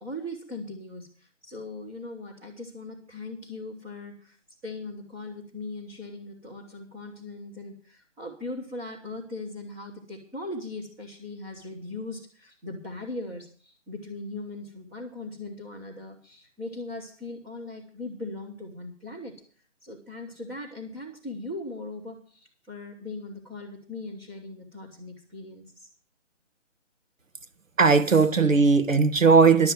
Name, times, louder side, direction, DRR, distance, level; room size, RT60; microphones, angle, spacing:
voice 1, 0.0-4.4 4.6-19.3 19.8-25.9, left 2 dB, 5° right, 0.8 m, -39 dB
voice 2, 27.8-29.7, right 4 dB, 85° right, 1.3 m, -18 dB
11.5 x 7.4 x 9.1 m
figure-of-eight pair, 145°, 38 cm